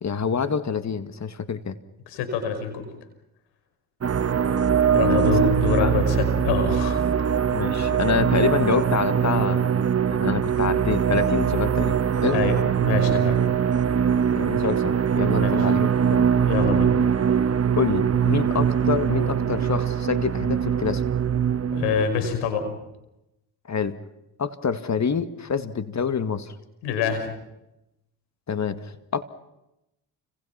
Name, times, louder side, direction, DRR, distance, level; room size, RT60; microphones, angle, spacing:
voice 1, 0.0-1.8 5.0-5.3 5.8-6.0 7.5-9.8 10.1-12.4 14.4-16.3 17.8-21.0 23.7-24.0 24.4-26.5 28.5-29.2, left 6 dB, 40° left, 10 dB, 2.1 m, -27 dB
voice 2, 2.1-2.9 4.9-7.3 12.3-13.4 15.4-15.6 16.4-16.9 21.7-22.7 26.8-27.3, left 6 dB, 90° left, 8 dB, 5.5 m, -26 dB
sound 1, 4.0-22.0, right 8 dB, 35° right, 1.3 m, -22 dB
29.5 x 27.5 x 5.9 m, 0.90 s
supercardioid pair, 65°, 41 cm